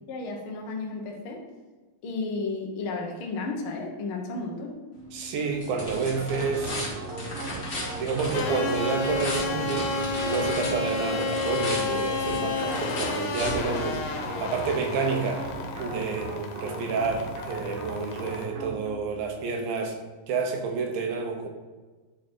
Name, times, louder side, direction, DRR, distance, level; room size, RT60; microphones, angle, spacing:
voice 1, 0.1-1.4 2.0-4.8, left 3 dB, 65° left, 0 dB, 1.3 m, -33 dB
sound 1, 4.9-14.4, left 1 dB, 30° left, 1.5 m, -36 dB
voice 2, 5.1-6.8 8.0-10.0 10.2-14.0 14.4-15.5 15.8-16.3 16.6-20.0 20.3-21.5, right 5 dB, 80° right, 3 dB, 2.8 m, -29 dB
sound 2, 5.9-19.1, right 3 dB, 60° right, 2.3 m, -37 dB
sound 3, 8.3-18.5, left 4 dB, 85° left, 2.8 m, -31 dB
10.0 x 5.1 x 4.5 m, 1.3 s
omnidirectional pair, 4.2 m